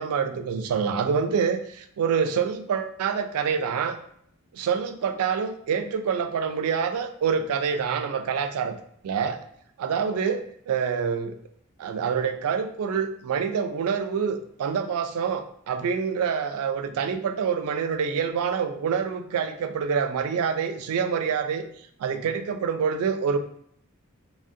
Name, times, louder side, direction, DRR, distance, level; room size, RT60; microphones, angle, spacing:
voice 1, 0.0-4.0 4.5-8.8 9.0-9.4 9.8-11.3 11.8-23.4, right 6 dB, 75° right, 8 dB, 0.3 m, -26 dB
3.4 x 2.0 x 2.5 m, 0.68 s
head